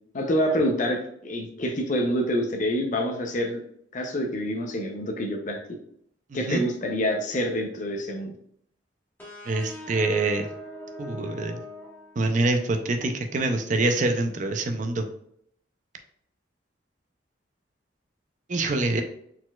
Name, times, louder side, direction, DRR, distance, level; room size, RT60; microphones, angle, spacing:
voice 1, 0.1-3.6 3.9-5.6 6.3-8.3, equal, 45° left, 3 dB, 0.6 m, -27 dB
voice 2, 6.3-6.6 9.5-10.5 11.0-11.6 12.2-15.0 18.5-19.0, right 2 dB, 40° right, 6 dB, 0.4 m, -25 dB
sound 1, 9.2-12.7, equal, 10° left, 1.4 m, -42 dB
4.2 x 4.1 x 2.3 m, 0.68 s
head